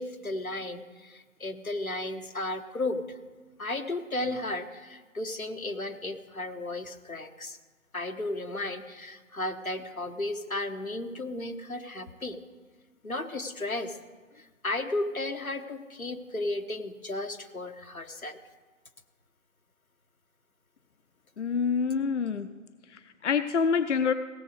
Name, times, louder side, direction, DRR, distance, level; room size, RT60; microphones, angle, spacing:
voice 1, 0.0-3.2 3.6-7.6 7.9-12.4 13.0-14.0 14.3-18.4, left 2 dB, 90° left, 6 dB, 1.2 m, -34 dB
voice 2, 21.4-22.5 22.9-24.1, left 6 dB, 60° left, 11 dB, 0.5 m, -27 dB
16.5 x 7.1 x 6.4 m, 1.3 s
figure-of-eight pair, 150°, 41 cm